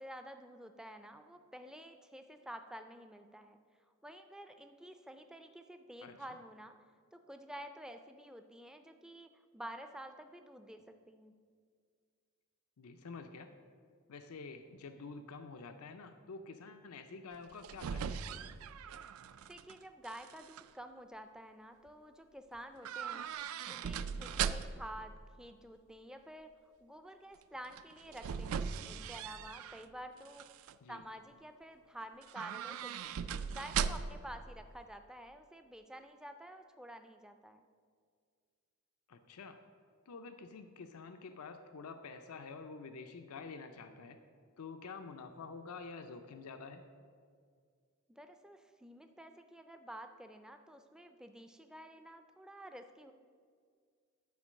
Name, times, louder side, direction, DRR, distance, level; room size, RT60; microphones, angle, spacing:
voice 1, 0.0-3.6 4.0-6.7 7.1-11.3 19.5-23.3 23.7-26.5 26.8-30.5 30.9-33.1 33.5-37.6 48.1-53.1, right 1 dB, 5° right, 7 dB, 0.3 m, -50 dB
voice 2, 12.8-13.5 14.1-18.3 30.8-31.0 39.1-39.6 40.1-44.2 44.6-46.8, left 4 dB, 90° left, 7 dB, 0.5 m, -48 dB
sound 1, 17.3-19.7 20.0-20.6 22.8-24.9 27.7-29.8 30.3-30.7 32.2-34.3 34.6-34.7, right 7 dB, 75° right, 0.3 m, -39 dB
10.5 x 4.5 x 6.3 m, 2.1 s
head